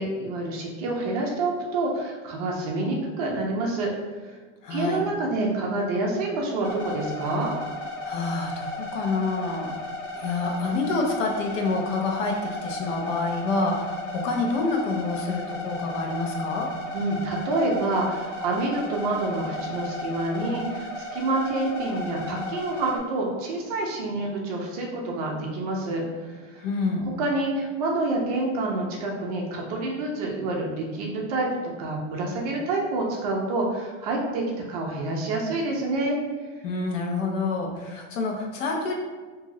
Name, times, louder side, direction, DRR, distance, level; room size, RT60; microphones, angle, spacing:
voice 1, 0.0-3.9 4.2-4.4 4.7-7.5 16.9-26.6 27.0-31.5 31.8-36.2, right 2 dB, 35° right, -1 dB, 0.4 m, -27 dB
voice 2, 4.6-5.0 8.0-9.7 10.1-12.4 12.6-16.7 26.6-27.1 36.6-38.9, left 3 dB, 80° left, 1 dB, 0.9 m, -27 dB
sound 1, 6.6-23.0, left 2 dB, 60° left, 1.2 m, -35 dB
3.0 x 2.6 x 3.7 m, 1.4 s
supercardioid pair, 175°, 37 cm